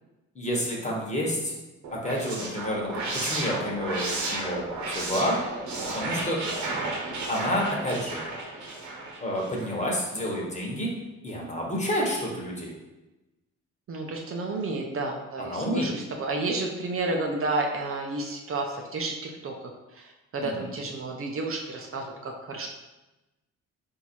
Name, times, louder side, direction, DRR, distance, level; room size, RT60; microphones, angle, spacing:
voice 1, 0.3-1.5 2.0-5.4 5.9-6.4 7.3-8.2 9.2-10.9 11.2-12.7 15.4-15.9 20.4-20.7, equal, 25° left, -2 dB, 1.3 m, -29 dB
sound 1, 1.8-9.9, right 2 dB, 70° right, 1.0 m, -33 dB
voice 2, 13.9-22.7, right 2 dB, 45° right, 2 dB, 0.7 m, -31 dB
4.1 x 2.7 x 4.5 m, 1.0 s
cardioid pair, 90°, 30 cm